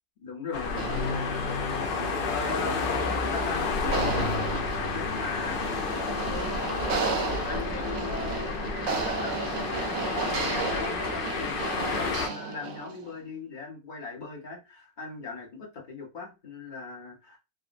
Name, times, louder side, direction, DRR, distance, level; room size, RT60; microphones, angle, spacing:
voice 1, 0.2-1.9 2.3-3.0 3.3-4.5 4.8-5.6 6.0-8.6 9.0-17.4, left 4 dB, 35° left, -1 dB, 0.9 m, -39 dB
sound 1, 0.5-12.3, left 4 dB, 85° left, 0.4 m, -30 dB
sound 2, 0.7-13.1, right 4 dB, 60° right, 0.7 m, -34 dB
3.8 x 2.0 x 2.5 m, 0.27 s
omnidirectional pair, 1.6 m